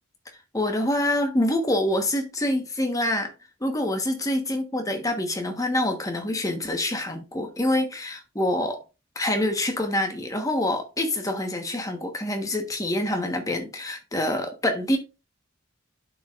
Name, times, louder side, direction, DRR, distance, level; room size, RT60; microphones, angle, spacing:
voice 1, 0.5-3.3 3.6-8.8 9.1-15.0, left 1 dB, 15° left, 1.2 m, -26 dB
11.5 x 4.7 x 2.5 m
head